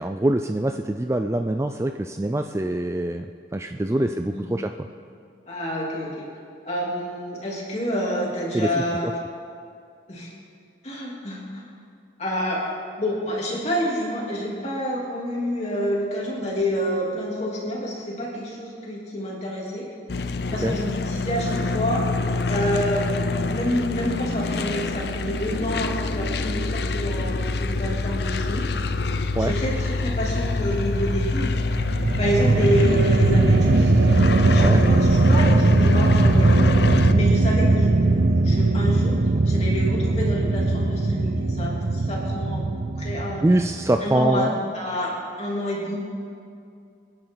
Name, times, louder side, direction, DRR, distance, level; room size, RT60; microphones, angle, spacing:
voice 1, 0.0-3.3 3.5-4.7 8.5-9.1 20.6-20.8 29.4-29.5 34.6-34.8 43.4-44.5, right 1 dB, 15° right, 6 dB, 0.3 m, -24 dB
voice 2, 3.9-4.5 5.5-6.3 6.6-9.1 10.1-10.3 10.8-11.6 12.2-12.7 13.0-19.8 20.5-22.0 22.5-23.1 23.5-28.6 29.4-31.5 32.2-39.2 39.4-42.6 43.0-43.4 44.0-46.0, equal, 35° left, -4 dB, 3.3 m, -28 dB
sound 1, 20.1-37.1, left 3 dB, 55° left, 0.6 m, -26 dB
sound 2, 31.7-44.0, right 2 dB, 60° right, 0.7 m, -19 dB
26.5 x 10.5 x 4.0 m, 2.4 s
head